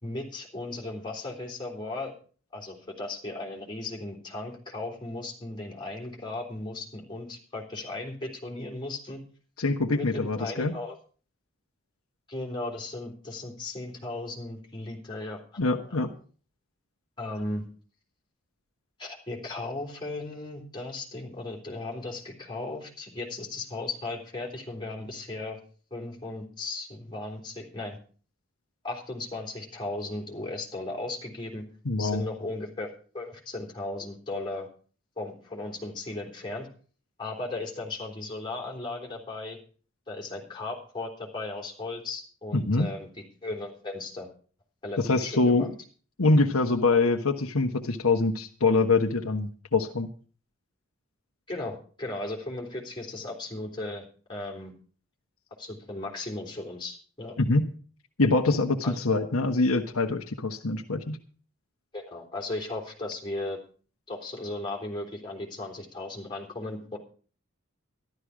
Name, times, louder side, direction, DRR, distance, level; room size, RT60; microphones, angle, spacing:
voice 1, 0.0-2.1 2.5-9.2 9.9-11.0 12.3-15.6 17.2-17.7 19.0-25.6 25.9-28.0 28.8-31.6 32.0-32.9 33.1-34.7 35.2-36.7 37.2-39.6 40.1-43.1 43.4-44.3 44.8-45.7 51.5-54.7 55.6-57.3 58.8-59.0 61.9-63.6 64.1-67.0, left 2 dB, 20° left, -1 dB, 3.6 m, -36 dB
voice 2, 9.6-10.7 15.6-16.1 31.8-32.3 42.5-42.9 45.0-45.7 46.2-50.1 57.4-57.7 58.2-61.2, left 3 dB, 85° left, 5 dB, 1.3 m, -24 dB
13.0 x 12.0 x 5.0 m, 0.41 s
head